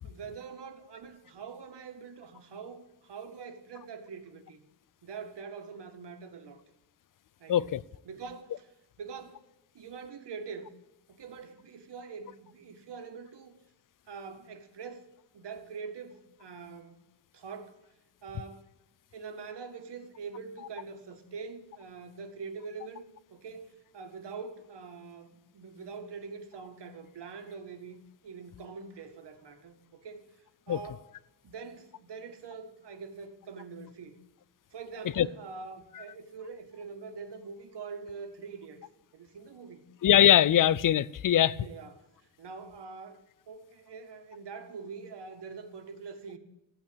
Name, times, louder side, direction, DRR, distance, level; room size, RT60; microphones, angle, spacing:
voice 1, 0.0-4.6 5.0-6.6 7.4-7.8 8.0-8.7 9.0-9.4 9.7-10.7 11.1-13.6 14.1-15.1 15.3-17.0 17.3-17.8 18.2-18.7 19.1-28.0 28.2-30.3 30.7-31.1 31.4-34.2 34.7-38.8 39.1-39.9 41.5-43.2 43.5-46.4, right 5 dB, 65° right, 1.9 m, -44 dB
voice 2, 7.5-7.8 30.7-30.8 35.2-35.3 40.0-41.6, left 11 dB, 45° left, 0.5 m, -21 dB
15.0 x 9.1 x 8.7 m
cardioid pair, 115°, 44 cm